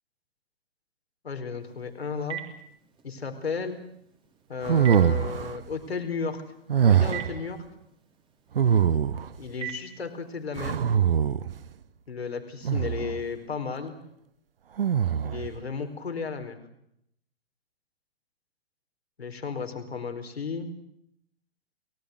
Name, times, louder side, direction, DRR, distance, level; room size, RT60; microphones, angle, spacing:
voice 1, 1.2-2.4 3.0-3.8 4.5-6.4 6.8-7.6 9.4-10.8 12.1-13.9 15.2-16.6 19.2-20.7, left 5 dB, 70° left, 6 dB, 4.5 m, -34 dB
Telephone, 1.6-10.5, right 11 dB, 15° right, 3.4 m, -44 dB
sound 1, 4.6-5.6 6.7-7.4 8.6-9.4 10.6-11.6 12.6-13.2 14.8-15.5, right 8 dB, 60° right, 1.1 m, -23 dB
29.5 x 18.0 x 8.0 m, 0.75 s
figure-of-eight pair, 115°, 32 cm